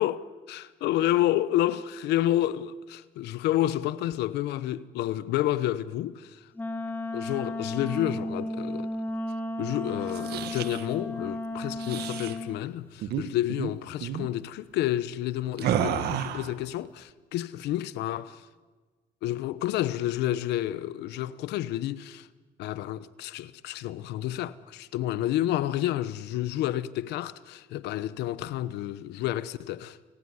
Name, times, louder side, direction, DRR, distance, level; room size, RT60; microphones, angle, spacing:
voice 1, 0.0-6.4 7.1-8.9 9.6-18.4 19.2-22.3 22.6-30.1, left 13 dB, 85° left, 1.1 m, -30 dB
Wind instrument woodwind instrument, 6.6-12.7, left 1 dB, 10° left, 2.5 m, -34 dB
sound 1, 10.0-10.9 11.8-12.4 13.0-13.2 13.5-13.7 14.0-14.3 15.6-16.5, right 10 dB, 75° right, 1.7 m, -31 dB
29.0 x 18.5 x 9.7 m
cardioid pair, 110°, 17 cm